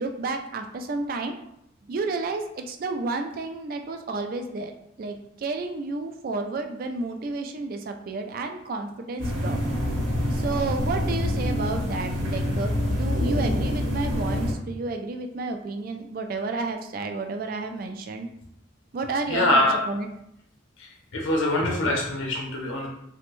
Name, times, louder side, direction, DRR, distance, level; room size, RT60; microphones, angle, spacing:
voice 1, 0.0-1.3 1.9-4.7 5.0-9.6 10.3-18.3 18.9-20.1, right 3 dB, 45° right, 5 dB, 0.3 m, -31 dB
sound 1, 9.2-14.5, left 1 dB, 70° right, 0.9 m, -26 dB
voice 2, 19.3-19.8 20.8-20.9 21.1-22.9, left 1 dB, 75° left, -1 dB, 0.6 m, -23 dB
3.3 x 2.1 x 3.0 m, 0.79 s
head